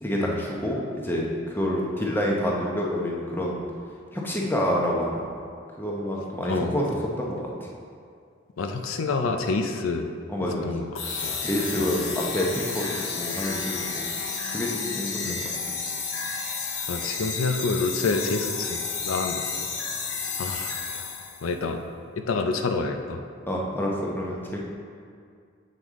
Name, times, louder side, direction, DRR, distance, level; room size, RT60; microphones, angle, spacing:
voice 1, 0.0-3.6 4.1-5.2 5.8-6.9 7.2-7.7 10.3-10.7 11.4-14.1 14.5-15.8 23.5-24.6, equal, 10° left, -3 dB, 0.8 m, -28 dB
voice 2, 8.6-10.1 10.6-10.9 11.2-11.3 11.8-11.9 15.2-15.4 16.9-19.4 20.4-21.0 21.4-21.8 22.2-23.2, left 3 dB, 90° left, 5 dB, 0.5 m, -28 dB
sound 1, 10.9-21.5, left 5 dB, 65° left, 0.8 m, -31 dB
7.7 x 5.3 x 3.6 m, 2.2 s
head